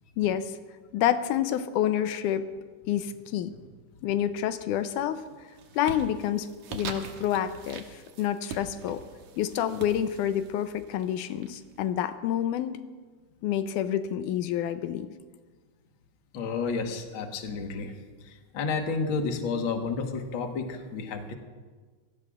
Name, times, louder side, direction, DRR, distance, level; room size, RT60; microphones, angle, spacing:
voice 1, 0.2-0.6 0.9-2.5 2.9-3.5 4.0-5.5 5.7-9.0 9.4-12.8 13.4-15.1, left 10 dB, 90° left, 10 dB, 2.2 m, -28 dB
sound 1, 4.5-5.0 5.4-12.0, right 6 dB, 75° right, 2.3 m, -43 dB
voice 2, 16.3-17.9 18.5-21.3, left 4 dB, 50° left, 4 dB, 1.7 m, -31 dB
25.0 x 17.0 x 2.4 m, 1.4 s
omnidirectional pair, 3.6 m